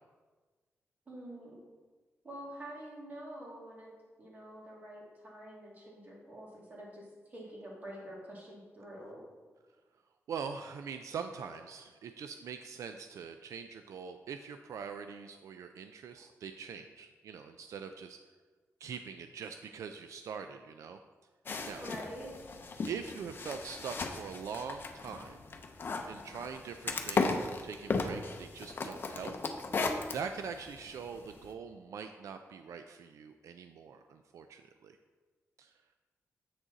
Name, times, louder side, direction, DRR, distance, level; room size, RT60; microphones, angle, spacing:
voice 1, 1.1-1.6 2.2-3.9 4.2-9.2 21.8-22.6, right 1 dB, 35° right, -4 dB, 2.3 m, -47 dB
voice 2, 10.3-18.2 18.8-21.0 21.7-21.8 22.9-25.4 26.1-29.3 30.1-35.0 35.6-35.7, right 6 dB, 85° right, 7 dB, 0.4 m, -43 dB
sound 1, 21.5-31.5, left 3 dB, 45° left, 0.7 m, -36 dB
7.9 x 6.2 x 4.0 m, 1.4 s
wide cardioid pair, 145°, 5 cm